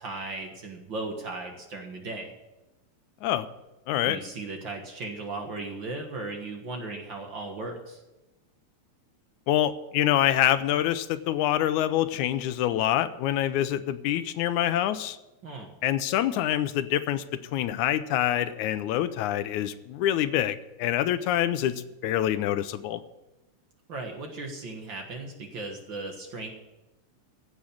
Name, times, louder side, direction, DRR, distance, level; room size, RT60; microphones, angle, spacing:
voice 1, 0.0-2.3 4.0-8.0 15.4-15.7 23.9-26.5, right 3 dB, 50° right, 3 dB, 1.8 m, -37 dB
voice 2, 3.9-4.2 9.5-15.2 15.8-17.2 17.5-23.0, left 12 dB, 85° left, 13 dB, 2.1 m, -26 dB
15.5 x 6.4 x 8.6 m, 1.0 s
omnidirectional pair, 3.4 m